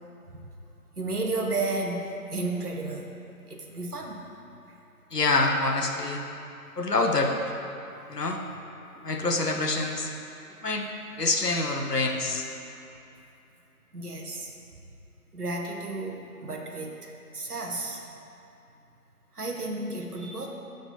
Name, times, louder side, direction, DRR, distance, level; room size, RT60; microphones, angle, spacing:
voice 1, 1.0-2.0 2.3-3.2 3.5-4.2 13.9-14.5 15.3-18.0 19.4-20.5, right 2 dB, 75° right, 1 dB, 1.0 m, -32 dB
voice 2, 5.1-6.2 6.8-7.3 8.1-8.4 9.0-10.1 10.6-10.9 11.2-12.4, left 2 dB, 90° left, 3 dB, 0.9 m, -26 dB
7.4 x 3.9 x 5.4 m, 2.8 s
figure-of-eight pair, 170°, 46 cm